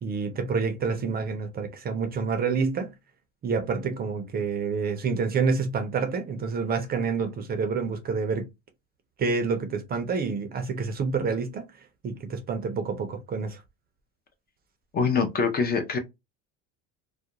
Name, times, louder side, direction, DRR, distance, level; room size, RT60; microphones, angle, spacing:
voice 1, 0.0-2.9 3.4-8.5 9.2-11.6 12.0-13.6, right 5 dB, 30° right, 0.5 m, -28 dB
voice 2, 14.9-16.0, left 5 dB, 30° left, 0.5 m, -24 dB
2.3 x 2.2 x 2.8 m
cardioid pair, 135°, 32 cm